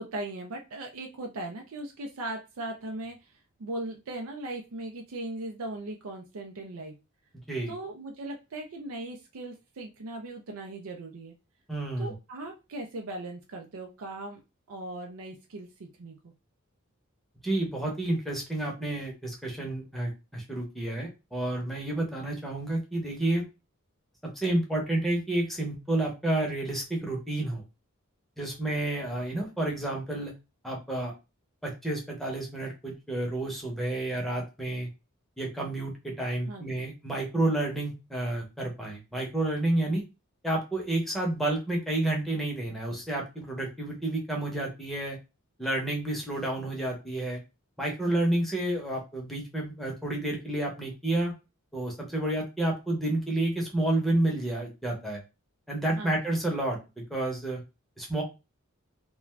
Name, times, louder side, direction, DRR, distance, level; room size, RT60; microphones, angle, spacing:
voice 1, 0.0-6.9 7.7-11.3 12.0-14.4 14.7-16.3 36.5-36.9 56.0-56.2, right 2 dB, 90° right, 2 dB, 0.5 m, -38 dB
voice 2, 11.7-12.1 17.4-23.4 24.4-27.6 28.4-30.3 30.6-31.1 31.6-34.9 35.4-40.0 40.4-45.2 45.6-47.4 47.8-51.3 51.7-55.2 55.7-56.8 57.1-57.6 58.0-58.2, right 1 dB, ahead, -2 dB, 0.7 m, -30 dB
2.4 x 2.2 x 3.1 m, 0.27 s
head